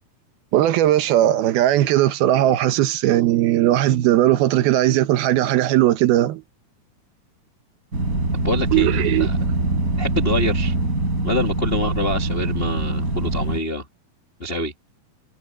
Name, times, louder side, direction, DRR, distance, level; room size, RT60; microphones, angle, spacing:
voice 1, 0.5-6.4 8.7-9.3, right 13 dB, 75° right, 2.8 m, -18 dB
sound 1, 7.9-13.6, right 2 dB, 20° right, 4.5 m, -23 dB
voice 2, 8.3-9.4 10.0-10.7 11.2-13.8 14.4-14.7, left 1 dB, 85° left, 0.5 m, -26 dB
omnidirectional pair, 4.7 m